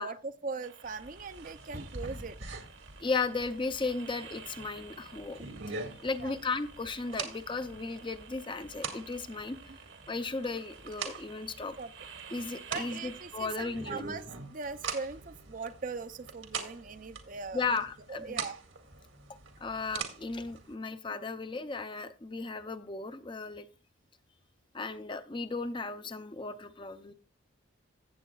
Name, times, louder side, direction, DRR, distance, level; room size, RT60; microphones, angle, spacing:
voice 1, 0.0-2.4 6.2-6.3 9.7-9.8 11.8-11.9 12.7-17.8 18.1-18.6, right 4 dB, 40° right, 11 dB, 0.5 m, -40 dB
sound 1, 0.6-14.0, right 6 dB, 60° right, 1.3 m, -52 dB
sound 2, 0.8-20.7, right 5 dB, 75° right, 2.0 m, -44 dB
voice 2, 3.0-5.4 6.0-9.6 10.1-11.7 12.3-14.0 17.5-18.4 19.6-23.7 24.7-27.1, left 4 dB, 25° left, 10 dB, 0.6 m, -35 dB
15.5 x 8.0 x 2.3 m, 0.35 s
head